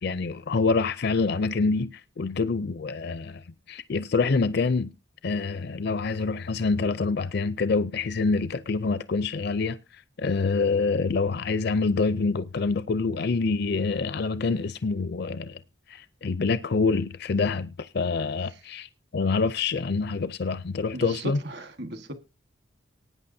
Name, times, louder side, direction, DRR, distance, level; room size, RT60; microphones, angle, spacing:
voice 1, 0.0-4.9 5.2-9.8 10.2-15.6 15.9-21.4, left 4 dB, 50° left, 0.5 m, -26 dB
voice 2, 20.9-22.1, equal, 55° right, 1.5 m, -36 dB
19.0 x 9.2 x 2.7 m
head